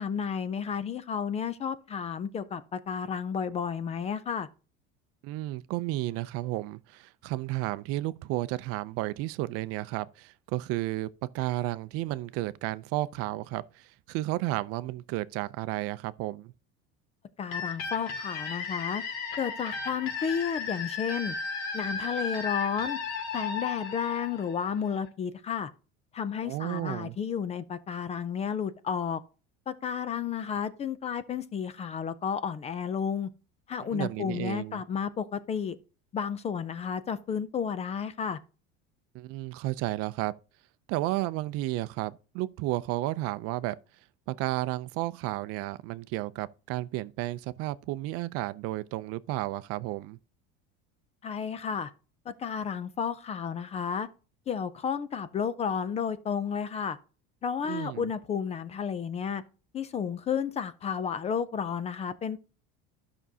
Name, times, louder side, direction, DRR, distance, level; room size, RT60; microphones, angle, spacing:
voice 1, 0.0-4.5 17.4-19.0 19.4-21.3 21.7-23.0 23.3-25.7 26.1-29.2 29.7-33.3 33.7-35.8 36.1-38.4 51.2-51.9 52.3-54.1 54.5-57.0 57.4-59.4 59.7-62.4, left 7 dB, 20° left, 0.4 m, -32 dB
voice 2, 5.2-11.1 11.3-16.5 26.4-27.2 33.9-34.8 39.1-40.3 40.9-43.8 44.3-50.2 57.7-58.1, right 17 dB, 55° right, 0.5 m, -32 dB
sound 1, 17.5-25.1, left 5 dB, 75° left, 2.7 m, -35 dB
12.5 x 6.0 x 2.7 m
cardioid pair, 150°, 29 cm